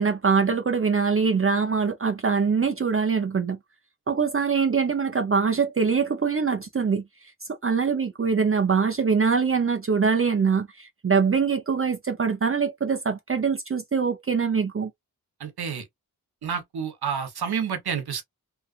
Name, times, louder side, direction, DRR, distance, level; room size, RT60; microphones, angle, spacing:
voice 1, 0.0-3.6 4.1-7.0 7.6-14.9, right 5 dB, 35° right, 0.6 m, -23 dB
voice 2, 15.4-15.8 16.4-18.2, right 7 dB, 80° right, 1.0 m, -29 dB
2.8 x 2.4 x 2.5 m
cardioid pair, 45°, 38 cm